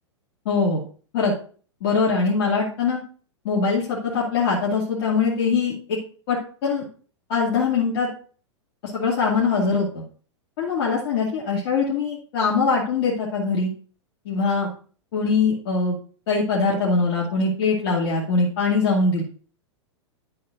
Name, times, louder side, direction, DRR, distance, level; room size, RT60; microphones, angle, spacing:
voice 1, 0.5-0.8 1.1-1.3 1.8-3.0 3.4-6.0 6.3-6.9 7.3-8.1 8.8-10.0 10.6-13.7 14.2-14.7 15.1-16.0 16.3-19.2, left 4 dB, 60° left, -4 dB, 2.3 m, -22 dB
11.0 x 7.6 x 2.5 m, 0.41 s
hypercardioid pair, 115°, 15 cm